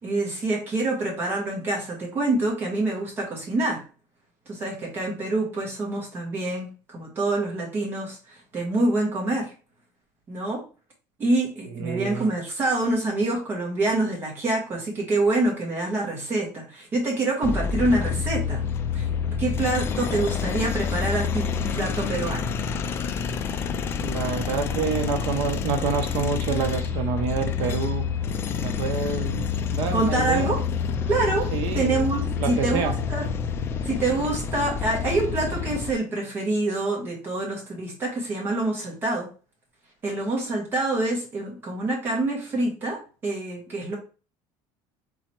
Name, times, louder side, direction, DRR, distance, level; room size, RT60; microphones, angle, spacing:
voice 1, 0.0-3.8 4.5-9.5 10.3-10.6 11.2-18.6 18.9-19.1 19.4-22.5 29.9-30.6 31.1-31.5 31.7-33.2 33.8-39.3 40.0-44.0, right 2 dB, 20° right, -1 dB, 1.5 m, -26 dB
voice 2, 11.6-12.3 24.0-28.1 28.6-29.4 29.7-30.5 31.5-32.1 32.4-32.9, right 6 dB, 50° right, 5 dB, 0.9 m, -28 dB
sound 1, 17.4-35.9, left 6 dB, 25° left, 0.3 m, -28 dB
3.9 x 3.1 x 4.4 m, 0.35 s
cardioid pair, 180°, 10 cm